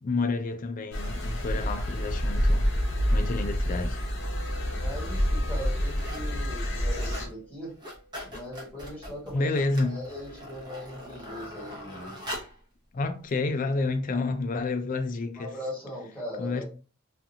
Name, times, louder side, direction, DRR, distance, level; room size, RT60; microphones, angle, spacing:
voice 1, 0.0-2.7 3.1-4.0 9.3-10.0 12.9-15.5 16.4-16.6, left 3 dB, 40° left, 0.3 m, -29 dB
sound 1, 0.9-7.3, equal, 60° left, 0.8 m, -28 dB
sound 2, 4.0-4.1 4.8-5.3 5.6-6.3 6.6-7.3 7.6-12.6 13.3-13.4, equal, 20° right, 0.8 m, -42 dB
sound 3, 4.2-8.5, equal, 70° right, 0.6 m, -51 dB
voice 2, 4.7-7.7 8.2-9.5 9.8-12.1 15.4-16.6, left 1 dB, 5° left, 1.5 m, -40 dB
2.6 x 2.4 x 2.7 m
head